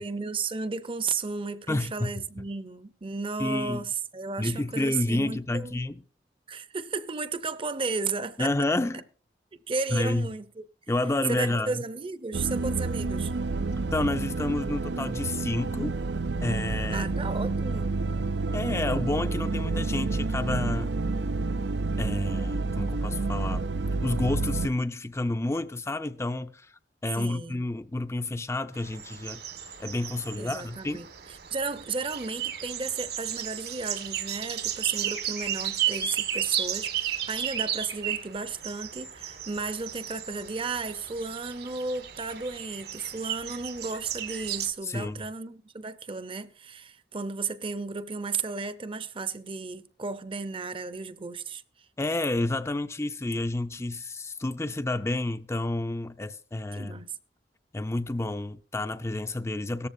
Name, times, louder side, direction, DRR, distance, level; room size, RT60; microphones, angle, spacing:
voice 1, 0.0-5.7 6.5-8.5 9.7-10.6 11.3-13.3 16.9-17.9 27.1-27.6 30.4-31.1 31.5-51.6 56.7-57.1, right 4 dB, 30° right, 0.7 m, -34 dB
voice 2, 1.7-2.1 3.4-3.9 4.4-6.0 8.4-9.0 9.9-10.3 10.9-11.8 13.9-16.0 16.4-17.1 18.5-20.9 22.0-23.7 24.0-29.4 29.8-31.0 44.8-45.2 52.0-57.0 57.7-59.9, left 2 dB, 15° left, 0.5 m, -30 dB
sound 1, 12.3-24.7, right 3 dB, 80° right, 0.6 m, -29 dB
sound 2, 28.7-44.7, right 10 dB, 65° right, 1.7 m, -34 dB
17.0 x 14.0 x 2.6 m
head